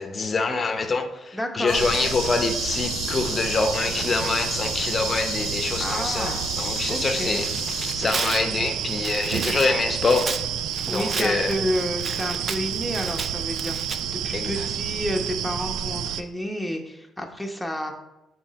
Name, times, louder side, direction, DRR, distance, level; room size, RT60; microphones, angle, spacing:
voice 1, 0.0-7.5 7.9-10.3 10.9-11.5 14.3-14.7, left 4 dB, 35° left, 7 dB, 0.8 m, -25 dB
voice 2, 1.3-1.9 5.8-6.4 6.9-7.4 10.9-17.9, equal, 5° left, 1 dB, 0.9 m, -30 dB
sound 1, 1.7-8.0, left 7 dB, 75° left, 0.9 m, -34 dB
sound 2, 1.7-16.2, right 9 dB, 90° right, 0.3 m, -29 dB
Tearing, 7.1-14.0, right 4 dB, 40° right, 0.5 m, -34 dB
6.1 x 4.3 x 4.2 m, 0.96 s
cardioid pair, 90°, 0 cm